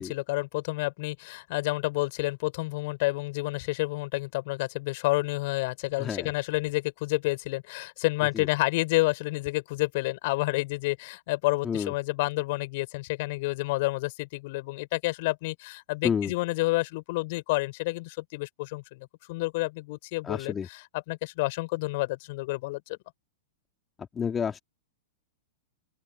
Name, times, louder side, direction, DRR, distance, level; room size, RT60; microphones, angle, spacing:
voice 1, 0.0-20.8 21.1-23.0, left 22 dB, 45° left, 5.5 m, -29 dB
voice 2, 6.0-6.3 8.3-8.5 11.6-11.9 16.0-16.3 20.2-20.7 24.1-24.6, left 7 dB, 20° left, 3.1 m, -29 dB
open air
figure-of-eight pair, 100°, 0 cm